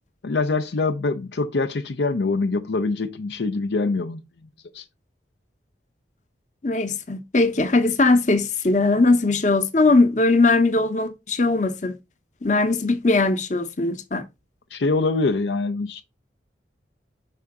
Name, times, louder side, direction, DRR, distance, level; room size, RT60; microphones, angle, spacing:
voice 1, 0.2-4.2 4.7-4.8 14.7-16.0, left 3 dB, 70° left, 0.5 m, -24 dB
voice 2, 6.6-12.0 12.4-14.3, left 3 dB, 40° left, 0.9 m, -20 dB
5.6 x 4.7 x 3.6 m
head